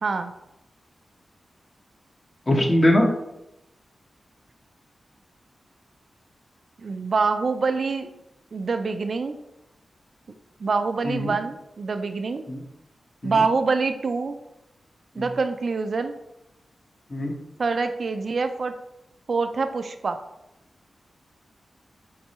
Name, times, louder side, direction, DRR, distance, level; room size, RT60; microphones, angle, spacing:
voice 1, 0.0-0.3 6.8-8.1 8.5-9.3 10.6-12.4 13.2-14.4 15.2-16.1 17.6-18.7 19.3-20.2, right 4 dB, 65° right, 8 dB, 0.4 m, -25 dB
voice 2, 2.5-3.1 11.0-11.4 12.5-12.6 13.2-13.4 15.2-15.3 17.1-17.3, left 1 dB, 40° left, 0 dB, 1.1 m, -21 dB
4.5 x 3.2 x 3.0 m, 0.89 s
cardioid pair, 50°, 0 cm